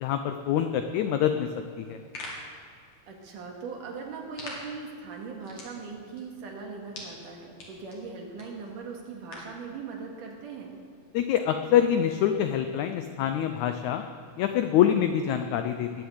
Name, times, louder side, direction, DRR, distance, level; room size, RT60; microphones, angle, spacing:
voice 1, 0.0-1.5 1.8-2.0 11.1-14.0 14.4-16.0, left 10 dB, 85° left, 7 dB, 1.6 m, -25 dB
sound 1, 1.8-9.6, left 2 dB, 55° left, 3.9 m, -46 dB
voice 2, 3.1-10.8, right 4 dB, 65° right, 1 dB, 3.3 m, -40 dB
20.5 x 7.1 x 8.0 m, 2.4 s
omnidirectional pair, 4.1 m